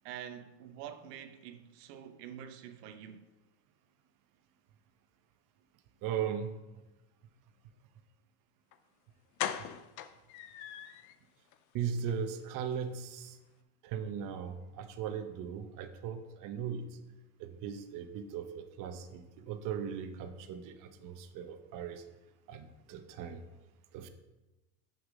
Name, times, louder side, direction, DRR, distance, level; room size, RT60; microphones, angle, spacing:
voice 1, 0.0-3.3, right 9 dB, 85° right, 0.9 m, -46 dB
voice 2, 6.0-6.5 11.7-13.4 13.8-16.9 17.4-22.0 22.5-23.4 23.9-24.1, right 7 dB, 45° right, 0.8 m, -38 dB
sound 1, 8.7-8.8 9.4-11.2 11.5-11.6 12.0-12.1 12.4-12.5, left 10 dB, 40° left, 0.5 m, -39 dB
6.5 x 5.9 x 6.2 m
supercardioid pair, 140°, 47 cm